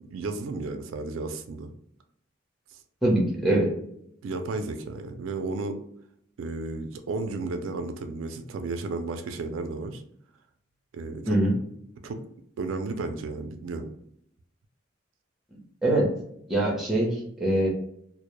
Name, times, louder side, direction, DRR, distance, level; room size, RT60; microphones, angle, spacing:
voice 1, 0.1-1.7 2.7-2.8 4.2-5.8 6.4-10.0 10.9-11.4 12.0-12.2 12.6-13.9, right 3 dB, 90° right, 7 dB, 0.3 m, -33 dB
voice 2, 3.0-3.7 11.3-11.5 15.5-16.1 16.5-17.7, right 1 dB, ahead, -3 dB, 0.7 m, -23 dB
2.1 x 2.0 x 3.0 m, 0.71 s
head